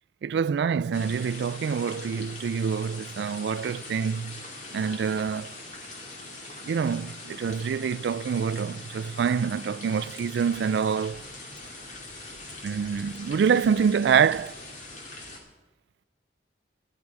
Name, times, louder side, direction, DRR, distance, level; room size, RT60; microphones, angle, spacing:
voice 1, 0.2-4.4 4.7-5.5 6.6-11.2 12.6-14.6, right 6 dB, 75° right, 0.3 m, -26 dB
sound 1, 0.9-15.4, left 2 dB, 45° left, 2.3 m, -42 dB
14.5 x 12.5 x 4.7 m
head